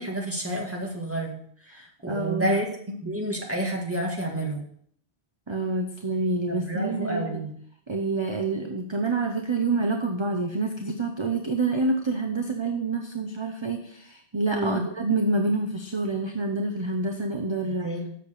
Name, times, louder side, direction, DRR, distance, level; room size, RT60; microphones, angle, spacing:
voice 1, 0.0-1.4 1.7-2.7 3.0-4.7 6.5-7.5 14.5-14.8 17.6-18.1, right 1 dB, 10° right, -1 dB, 1.9 m, -29 dB
voice 2, 1.7-2.6 2.9-3.0 5.5-7.4 7.9-17.9, right 3 dB, 30° right, 3 dB, 0.8 m, -27 dB
7.9 x 6.7 x 6.6 m, 0.64 s
omnidirectional pair, 1.1 m